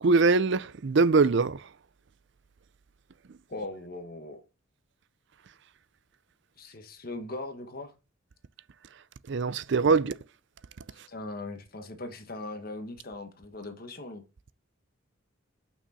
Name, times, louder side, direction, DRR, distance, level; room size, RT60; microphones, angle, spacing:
voice 1, 0.0-1.6 9.3-10.1, right 4 dB, 60° right, 0.5 m, -22 dB
voice 2, 3.5-4.4 6.6-7.9 10.9-14.2, left 2 dB, 45° left, 1.2 m, -39 dB
6.8 x 6.1 x 4.2 m
head